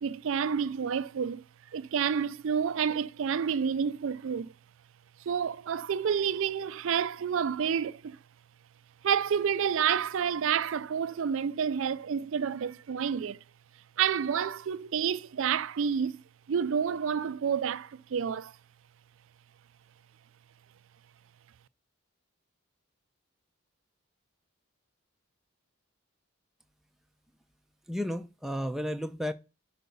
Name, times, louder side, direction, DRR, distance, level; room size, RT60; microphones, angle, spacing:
voice 1, 0.0-1.4 1.7-4.5 5.3-8.2 9.0-13.4 14.0-16.2 16.5-18.6, right 7 dB, 65° right, 0.4 m, -29 dB
voice 2, 27.9-29.3, equal, ahead, 0.5 m, -32 dB
11.0 x 4.7 x 5.3 m
head